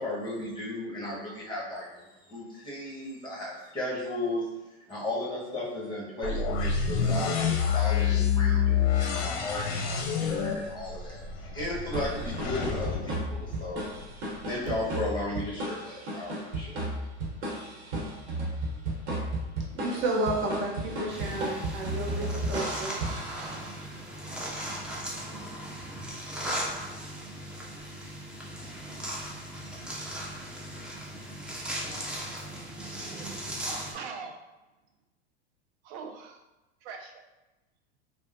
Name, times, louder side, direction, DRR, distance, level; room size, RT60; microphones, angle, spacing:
voice 1, 0.0-4.5 4.9-13.9 14.4-16.9, left 1 dB, 15° left, -6 dB, 1.2 m, -35 dB
sound 1, 6.2-14.1, left 7 dB, 60° left, 0.6 m, -28 dB
sound 2, 11.9-23.9, right 1 dB, 80° right, 1.0 m, -34 dB
voice 2, 19.7-23.0, right 2 dB, 35° right, -1 dB, 0.8 m, -31 dB
sound 3, 21.1-33.9, right 1 dB, 5° right, 0.3 m, -37 dB
voice 3, 31.5-34.4 35.8-36.4 36.8-37.2, right 5 dB, 60° right, 3 dB, 0.6 m, -44 dB
3.1 x 2.1 x 2.6 m, 1.0 s
hypercardioid pair, 105°, 33 cm